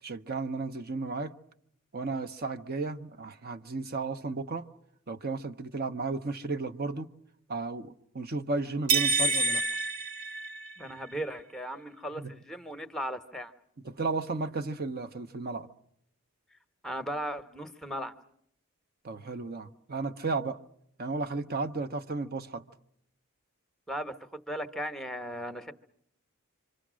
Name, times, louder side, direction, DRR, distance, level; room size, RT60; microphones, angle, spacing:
voice 1, 0.0-1.3 1.9-4.7 5.1-7.1 7.5-9.6 12.2-12.3 13.8-15.7 19.0-20.6 21.0-22.7, right 3 dB, 45° right, 0.9 m, -34 dB
sound 1, 8.9-11.0, right 3 dB, 70° right, 1.6 m, -28 dB
voice 2, 10.8-13.5 16.8-18.1 23.9-25.7, equal, ahead, 1.1 m, -37 dB
27.0 x 25.0 x 6.3 m
head